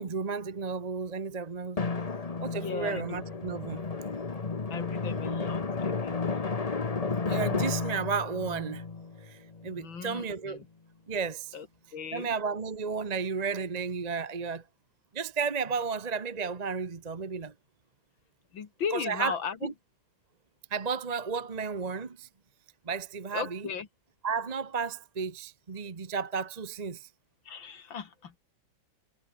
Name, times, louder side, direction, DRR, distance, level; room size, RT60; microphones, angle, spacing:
voice 1, 0.0-1.8 2.4-3.8 7.3-8.8 9.2-10.6 11.1-11.5 12.1-14.6 15.1-17.5 18.9-19.3 19.6-19.7 20.7-22.3 22.9-23.6 24.2-27.1, right 5 dB, 25° right, 0.9 m, -33 dB
Drum, 1.8-10.1, left 4 dB, 25° left, 0.9 m, -33 dB
voice 2, 2.4-3.2 4.7-6.5 9.7-10.7 11.5-11.7 11.9-12.3 18.5-19.7 23.3-23.9 27.4-28.3, left 7 dB, 75° left, 2.7 m, -37 dB
omnidirectional pair, 2.1 m